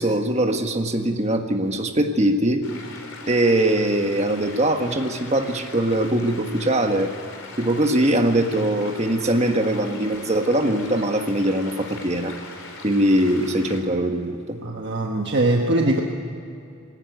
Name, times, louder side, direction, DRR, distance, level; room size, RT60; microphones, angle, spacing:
voice 1, 0.0-2.6 3.3-7.1 7.6-12.3 12.8-14.6, right 1 dB, 30° right, 5 dB, 1.6 m, -21 dB
sound 1, 2.6-13.8, left 3 dB, 75° left, 4.2 m, -40 dB
voice 2, 14.6-16.0, right 2 dB, 55° right, 1 dB, 1.4 m, -21 dB
21.0 x 17.5 x 9.2 m, 2.6 s
head